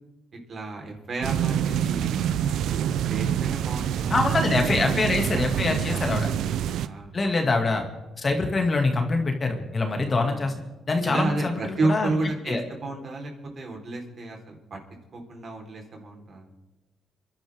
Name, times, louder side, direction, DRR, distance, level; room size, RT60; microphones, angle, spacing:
voice 1, 0.5-2.4 3.1-4.2 4.7-6.2 6.8-7.4 10.3-10.5 11.0-14.8 15.1-16.5, right 2 dB, 45° right, 2 dB, 4.2 m, -32 dB
sound 1, 1.2-6.9, right 9 dB, 80° right, 0.6 m, -26 dB
voice 2, 4.1-6.3 7.1-7.8 8.2-10.6 10.9-12.1 12.5-12.6, left 3 dB, 35° left, 3 dB, 2.3 m, -24 dB
28.0 x 11.5 x 3.7 m, 1.1 s
cardioid pair, 90°, 0 cm